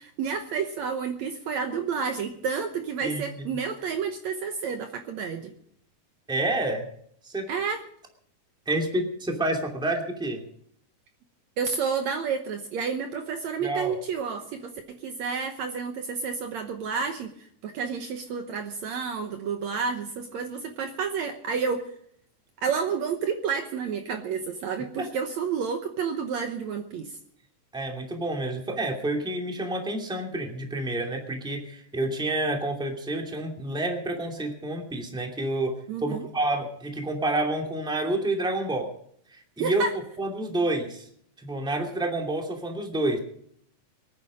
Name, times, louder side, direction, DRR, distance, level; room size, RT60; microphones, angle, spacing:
voice 1, 0.0-5.5 7.5-7.8 11.6-17.3 17.6-21.9 22.6-27.1 35.9-36.3 39.6-39.9, right 6 dB, 65° right, 6 dB, 2.1 m, -30 dB
voice 2, 3.0-3.5 6.3-6.9 7.2-7.5 8.7-10.4 13.6-14.0 25.0-25.1 27.7-35.7 36.0-38.9 39.3-39.8 40.2-41.1 41.4-43.2, right 2 dB, ahead, 2 dB, 2.0 m, -29 dB
24.5 x 9.6 x 5.1 m, 0.65 s
omnidirectional pair, 3.8 m